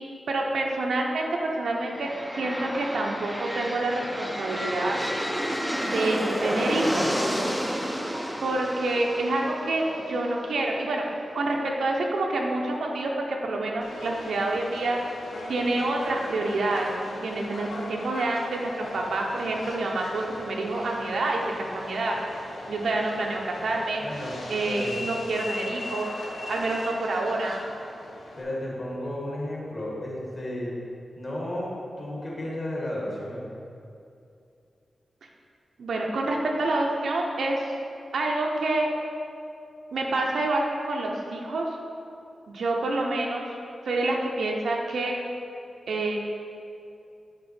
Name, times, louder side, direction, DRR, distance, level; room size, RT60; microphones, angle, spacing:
voice 1, 0.3-5.0 5.9-7.1 8.4-11.0 11.3-15.0 15.5-22.2 22.7-24.0 24.5-26.1 26.5-27.6 35.8-37.6 38.1-38.9 39.9-41.6 42.5-43.5 43.8-45.2 45.9-46.2, right 2 dB, 85° right, 0 dB, 0.9 m, -27 dB
sound 1, 1.8-11.6, equal, ahead, 0.5 m, -31 dB
Subway metro underground, 13.8-28.4, left 2 dB, 80° left, 1.0 m, -39 dB
voice 2, 24.0-24.4 24.7-25.0 28.4-30.7 31.2-33.5, left 1 dB, 35° left, -4 dB, 1.6 m, -33 dB
10.5 x 3.8 x 4.4 m, 2.6 s
wide cardioid pair, 175°, 0 cm